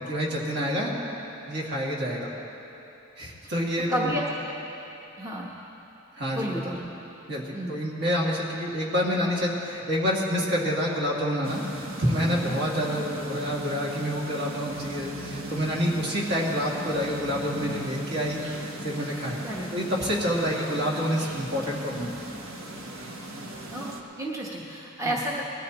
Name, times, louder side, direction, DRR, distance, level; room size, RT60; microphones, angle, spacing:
voice 1, 0.1-1.0 1.5-2.3 3.2-4.1 6.2-6.5 7.3-19.4 19.7-22.1 25.0-25.2, equal, 55° right, -4 dB, 2.3 m, -28 dB
voice 2, 3.9-4.3 5.2-5.5 6.3-6.9 7.5-7.8 19.4-19.7 23.7-23.9 24.2-25.4, right 1 dB, 15° right, -3 dB, 1.0 m, -31 dB
sound 1, 11.4-24.0, right 1 dB, 70° right, 1.2 m, -38 dB
20.5 x 14.0 x 3.0 m, 3.0 s
head